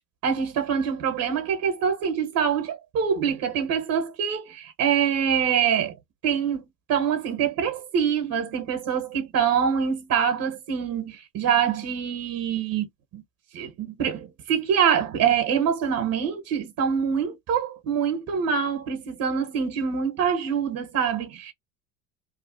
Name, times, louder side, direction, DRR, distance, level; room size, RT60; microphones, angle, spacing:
voice 1, 0.2-5.9 6.2-6.6 6.9-12.9 13.1-13.2 13.5-21.5, right 7 dB, 45° right, 1.2 m, -25 dB
2.9 x 2.4 x 2.6 m
hypercardioid pair, 70°, 48 cm